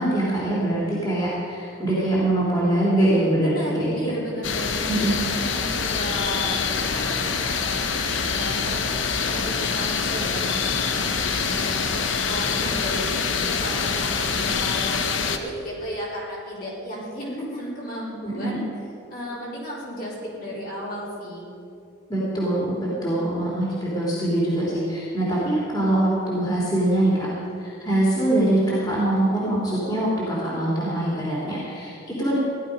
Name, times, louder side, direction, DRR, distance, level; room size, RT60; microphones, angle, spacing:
voice 1, 0.0-4.2 4.9-5.1 18.3-18.6 22.1-27.3 27.6-32.3, right 1 dB, 20° left, -7 dB, 3.0 m, -23 dB
voice 2, 3.4-7.9 8.3-8.8 9.3-12.0 12.3-18.7 19.1-21.5 23.1-23.9, equal, 45° left, -6 dB, 3.9 m, -34 dB
sound 1, 4.4-15.4, left 5 dB, 70° left, 0.9 m, -25 dB
16.5 x 11.5 x 5.3 m, 2.6 s
head